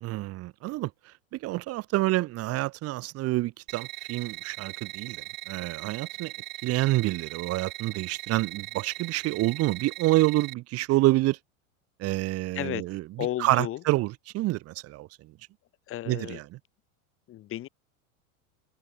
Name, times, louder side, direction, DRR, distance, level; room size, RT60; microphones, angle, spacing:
voice 1, 0.0-6.3 6.6-11.4 12.0-13.0 13.4-15.4 16.1-16.4, right 18 dB, 35° right, 0.9 m, -28 dB
sound 1, 3.7-10.5, right 20 dB, 70° right, 1.3 m, -39 dB
voice 2, 12.5-12.9 13.2-13.8 15.9-16.4 17.3-17.7, left 14 dB, 30° left, 1.3 m, -33 dB
supercardioid pair, 125°, 42 cm